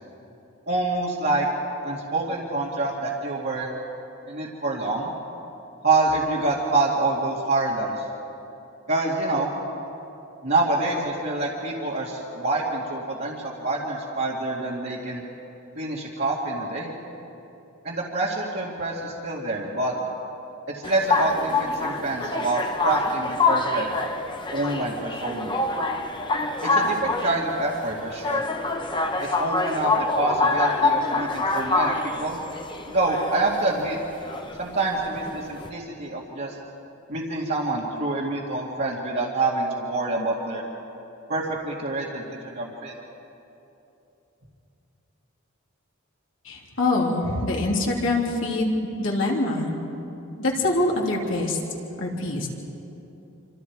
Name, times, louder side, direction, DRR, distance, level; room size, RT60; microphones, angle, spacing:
voice 1, 0.7-1.5 1.8-3.7 4.3-5.1 5.8-7.9 8.9-9.5 10.4-15.2 15.8-16.9 17.8-20.0 20.7-23.9 24.5-25.6 26.6-28.4 29.2-32.4 32.9-34.0 34.6-36.5 37.1-40.6 41.3-42.9, right 2 dB, 50° right, -7 dB, 2.4 m, -26 dB
sound 1, 20.8-35.7, left 3 dB, 20° left, 1.1 m, -26 dB
voice 2, 46.4-48.7 49.0-49.7 50.4-51.6 52.0-52.5, left 2 dB, 60° left, -2 dB, 3.3 m, -24 dB
27.0 x 26.5 x 4.8 m, 2.9 s
head